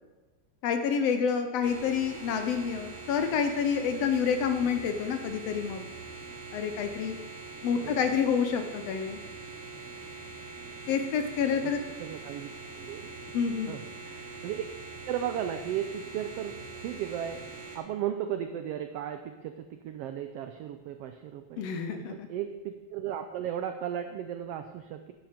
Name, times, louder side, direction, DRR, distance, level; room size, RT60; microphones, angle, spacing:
voice 1, 0.6-5.8 6.5-7.2 7.6-9.2 10.9-11.8 13.3-13.8 21.6-22.3, left 6 dB, 70° left, 7 dB, 1.7 m, -28 dB
sound 1, 1.6-17.8, right 4 dB, 55° right, 3.1 m, -43 dB
voice 2, 12.0-13.1 13.7-14.6 15.1-16.6 16.8-25.1, right 10 dB, 90° right, 8 dB, 1.3 m, -36 dB
10.0 x 9.0 x 5.1 m, 1.2 s
omnidirectional pair, 3.4 m